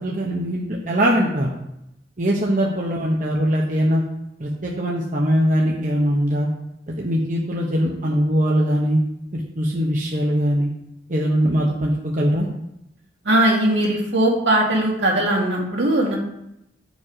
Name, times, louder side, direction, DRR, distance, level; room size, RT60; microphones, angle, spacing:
voice 1, 0.0-1.5 2.2-4.0 4.4-6.5 7.0-9.0 9.3-10.7 11.1-12.5, equal, 45° right, -2 dB, 1.0 m, -21 dB
voice 2, 13.2-16.2, right 1 dB, 75° right, -2 dB, 2.3 m, -19 dB
9.1 x 5.3 x 4.9 m, 0.83 s
head